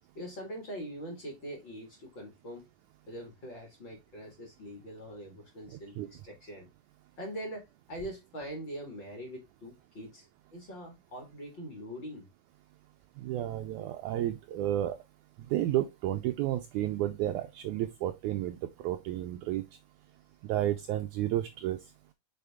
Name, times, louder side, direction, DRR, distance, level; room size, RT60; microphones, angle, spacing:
voice 1, 0.2-2.6 3.1-6.7 7.2-12.3, equal, 40° left, 2.1 m, -43 dB
voice 2, 13.2-15.0 15.5-19.6 20.4-21.8, right 13 dB, 85° right, 1.7 m, -31 dB
6.6 x 4.3 x 3.5 m
omnidirectional pair, 4.1 m